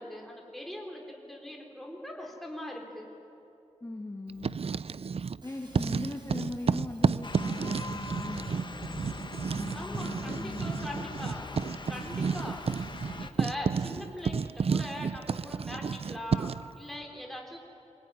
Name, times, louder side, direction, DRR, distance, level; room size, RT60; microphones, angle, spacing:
voice 1, 0.0-3.1 9.7-11.4 11.9-17.6, left 1 dB, ahead, 0 dB, 4.1 m, -41 dB
voice 2, 3.8-4.7 5.4-9.2 9.6-11.2, left 2 dB, 25° left, 1 dB, 1.7 m, -40 dB
Writing, 4.3-5.4 5.7-16.7, right 5 dB, 55° right, 0.5 m, -31 dB
Shatter, 5.4-8.0 9.8-9.9 10.4-10.5 11.1-13.4 14.2-14.5, right 1 dB, 40° right, 6.3 m, -60 dB
sound 1, 7.2-13.3, left 3 dB, 40° left, 1.1 m, -42 dB
24.0 x 19.0 x 9.8 m, 2.9 s
wide cardioid pair, 105°, 12 cm